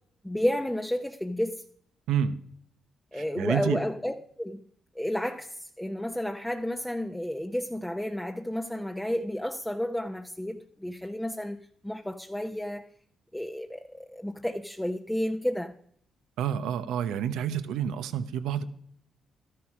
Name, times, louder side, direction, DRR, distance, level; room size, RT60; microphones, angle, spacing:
voice 1, 0.2-1.6 3.1-4.6 4.9-12.9 13.3-15.7, left 1 dB, 5° left, 0.8 m, -31 dB
voice 2, 3.1-3.8 16.4-18.6, right 8 dB, 85° right, 0.9 m, -29 dB
12.5 x 10.5 x 4.9 m
supercardioid pair, 65°, 0 cm